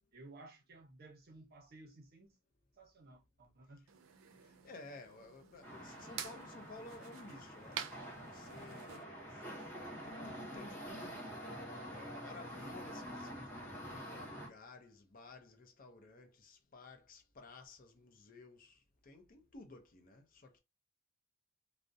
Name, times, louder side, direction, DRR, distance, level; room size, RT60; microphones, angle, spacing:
voice 1, 0.1-2.4 2.8-3.9, right 2 dB, 50° right, 0.7 m, -56 dB
sound 1, 3.9-9.0, right 9 dB, 85° right, 0.4 m, -49 dB
voice 2, 4.4-7.9 8.2-11.4 11.9-20.6, left 3 dB, 45° left, 0.5 m, -55 dB
sound 2, 5.6-14.5, equal, 10° left, 0.8 m, -47 dB
2.3 x 2.0 x 2.6 m
head